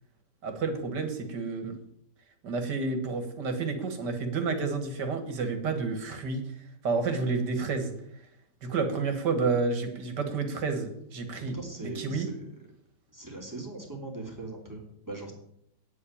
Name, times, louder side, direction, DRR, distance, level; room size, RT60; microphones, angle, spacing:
voice 1, 0.4-1.8 2.4-6.4 6.8-7.9 8.6-12.3, right 4 dB, 80° right, 7 dB, 2.3 m, -30 dB
voice 2, 11.5-12.5 13.1-15.3, right 2 dB, 10° right, -1 dB, 2.8 m, -40 dB
9.5 x 7.7 x 8.6 m, 0.74 s
omnidirectional pair, 1.8 m